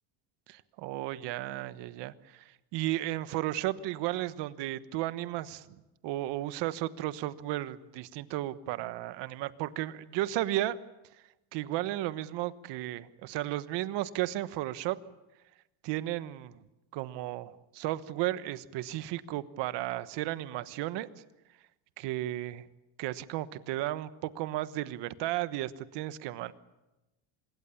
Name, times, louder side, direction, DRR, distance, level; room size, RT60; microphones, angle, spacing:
voice 1, 0.5-2.4 2.7-5.7 6.0-10.8 11.5-15.0 15.8-16.6 16.9-21.1 22.0-22.6 23.0-26.5, right 15 dB, 65° right, 13 dB, 1.3 m, -34 dB
26.0 x 21.5 x 7.2 m, 0.99 s
cardioid pair, 130°, 45 cm